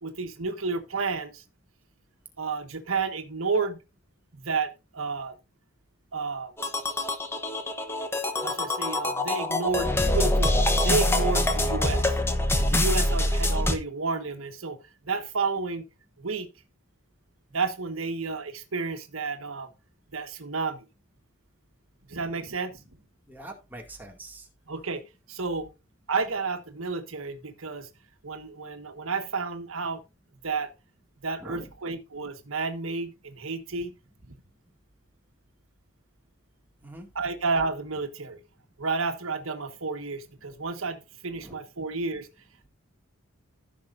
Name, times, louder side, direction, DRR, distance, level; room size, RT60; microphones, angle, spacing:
voice 1, 0.0-1.4 2.4-3.8 4.3-5.3 6.1-6.5 8.4-12.2 12.6-14.8 15.0-15.9 16.2-16.5 17.5-19.7 20.1-20.8 22.1-22.8 24.7-25.0 25.3-25.7 26.1-27.9 28.2-30.0 30.4-30.7 31.2-33.9 34.3-34.4 37.1-38.4 38.8-42.3, right 4 dB, 75° right, 1.4 m, -31 dB
sound 1, 6.6-13.8, left 1 dB, 10° left, 0.9 m, -25 dB
voice 2, 23.3-24.5 31.4-31.7 36.8-37.1 41.3-41.6, right 1 dB, 10° right, 2.2 m, -43 dB
15.0 x 6.3 x 2.6 m
head